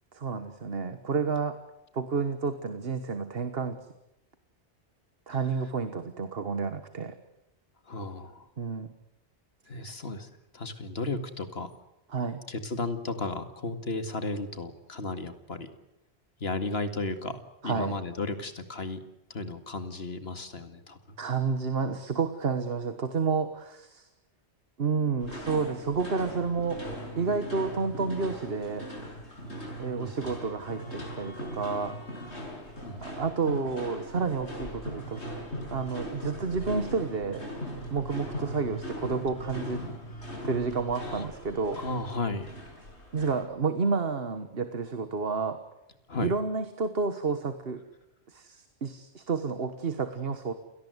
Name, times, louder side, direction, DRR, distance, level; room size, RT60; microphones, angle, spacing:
voice 1, 0.1-1.6 1.9-3.8 5.3-7.1 8.6-8.9 9.8-9.9 12.1-12.4 17.6-18.0 21.2-24.1 24.8-26.8 27.1-28.9 29.8-32.0 33.0-35.4 35.7-39.8 40.4-41.8 43.1-45.6 46.2-47.8 48.3-50.5, right 4 dB, 60° right, 10 dB, 1.6 m, -30 dB
voice 2, 7.9-8.5 9.7-11.7 12.5-15.7 16.4-19.0 19.3-21.2 30.0-30.1 32.8-33.0 41.0-41.3 41.8-42.6 46.1-46.3, left 3 dB, 65° left, 9 dB, 2.4 m, -34 dB
sound 1, 25.2-43.4, equal, 80° left, 6.7 m, -39 dB
29.5 x 18.5 x 8.1 m, 0.91 s
omnidirectional pair, 1.1 m